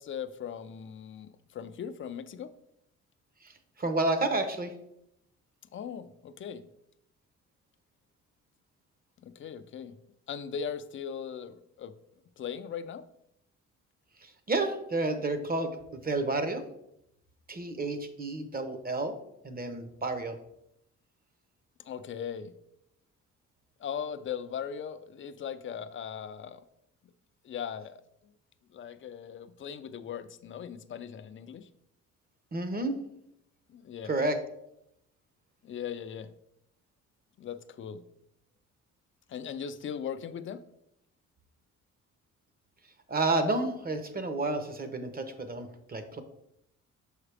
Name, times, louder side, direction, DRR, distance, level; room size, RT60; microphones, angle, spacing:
voice 1, 0.0-2.5 5.7-6.7 9.2-10.0 10.3-11.9 12.4-13.0 21.9-22.5 23.8-26.6 27.4-28.0 28.7-31.7 33.7-34.1 35.6-36.3 37.4-38.0 39.3-40.6, left 8 dB, 40° left, 11 dB, 0.5 m, -39 dB
voice 2, 3.8-4.7 14.2-16.6 17.5-19.1 19.4-20.4 32.5-32.9 34.0-34.4 43.1-46.2, right 2 dB, 30° right, 8 dB, 0.9 m, -30 dB
6.4 x 4.9 x 3.4 m, 0.78 s
cardioid pair, 90°, 30 cm